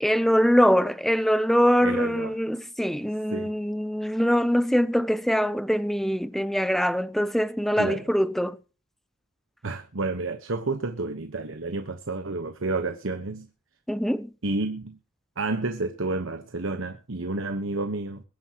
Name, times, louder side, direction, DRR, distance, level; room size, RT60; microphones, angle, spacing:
voice 1, 0.0-8.6 13.9-14.3, equal, ahead, 0.6 m, -23 dB
voice 2, 1.8-2.4 3.3-3.5 7.8-8.1 9.6-13.5 14.4-15.0 15.4-18.2, right 3 dB, 65° right, 1.1 m, -30 dB
22.5 x 9.7 x 2.9 m
head